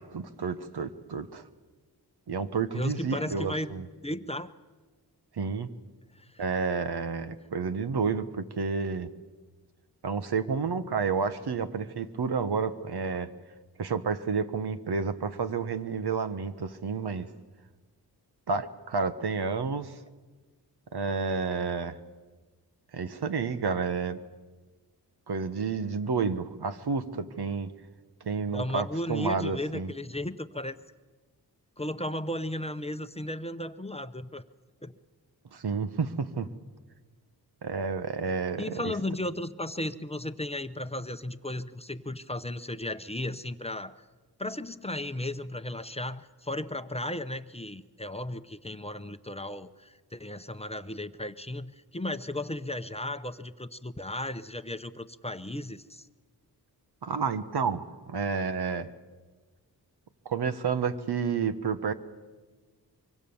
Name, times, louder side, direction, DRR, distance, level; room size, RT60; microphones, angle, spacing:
voice 1, 0.0-1.4 2.3-3.8 5.3-5.7 6.4-9.1 10.0-13.3 13.8-17.3 18.5-20.0 20.9-22.0 22.9-24.2 25.3-27.7 28.2-29.9 35.5-36.5 37.6-38.9 57.0-58.9 60.2-61.9, right 5 dB, 75° right, 11 dB, 1.3 m, -30 dB
voice 2, 2.7-3.7 4.0-4.5 6.1-6.4 28.5-30.8 31.8-34.4 34.8-35.0 38.6-44.0 44.4-56.1, left 1 dB, 15° left, 10 dB, 0.8 m, -35 dB
25.0 x 24.0 x 7.1 m, 1.3 s
wide cardioid pair, 95°, 40 cm